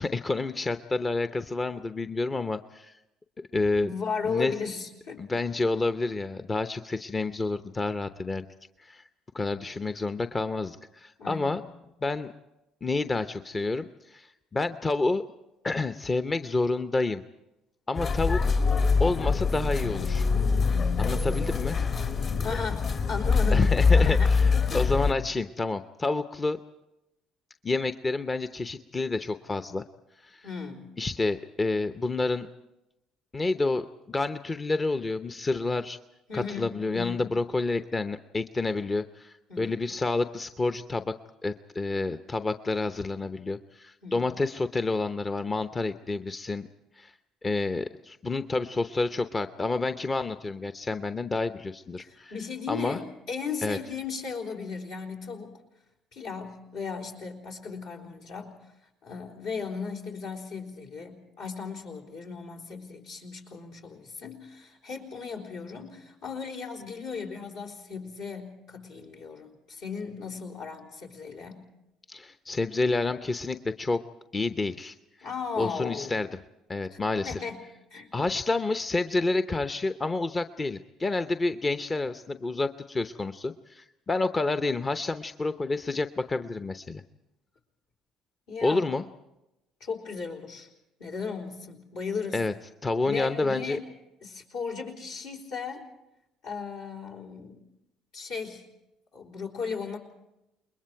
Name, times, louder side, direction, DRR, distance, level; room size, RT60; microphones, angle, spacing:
voice 1, 0.0-2.9 3.5-3.9 4.3-4.5 5.2-8.4 8.8-9.0 9.3-11.6 12.0-12.3 12.8-15.2 15.6-17.2 17.9-18.5 19.0-20.3 21.0-21.8 23.5-26.6 27.6-29.8 30.2-30.5 31.0-32.5 33.3-36.0 36.3-41.1 41.4-46.7 47.0-47.1 47.4-52.3 52.7-53.0 53.6-53.8 72.1-74.0 74.3-74.9 75.6-76.3 76.7-77.4 78.1-87.0 88.6-89.0 92.3-92.5 92.8-93.8, left 3 dB, 25° left, 10 dB, 0.8 m, -29 dB
voice 2, 3.8-5.4 11.2-11.7 22.4-24.3 24.7-24.9 30.4-31.0 36.3-37.2 39.5-39.8 44.0-44.3 52.0-55.6 56.1-58.6 59.0-71.7 75.2-76.1 76.9-77.0 77.2-77.6 77.9-78.1 88.5-88.8 89.8-90.7 91.0-92.4 93.0-93.9 94.2-95.9 96.4-97.6 98.1-98.7 99.1-100.0, left 5 dB, 75° left, -2 dB, 4.0 m, -36 dB
sound 1, 17.9-25.1, left 4 dB, 50° left, 2.4 m, -24 dB
29.0 x 21.5 x 4.6 m, 0.91 s
hypercardioid pair, 55°, 0 cm